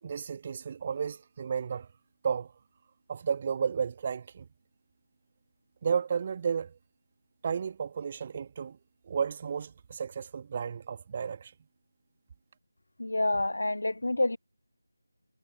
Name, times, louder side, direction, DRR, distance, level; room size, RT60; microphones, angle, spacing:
voice 1, 0.0-1.9 2.2-2.5 3.1-4.5 5.8-6.8 7.4-8.8 9.0-11.6, right 6 dB, 25° right, 2.1 m, -32 dB
voice 2, 13.0-14.4, left 2 dB, 60° left, 0.4 m, -28 dB
figure-of-eight pair, 160°, 0 cm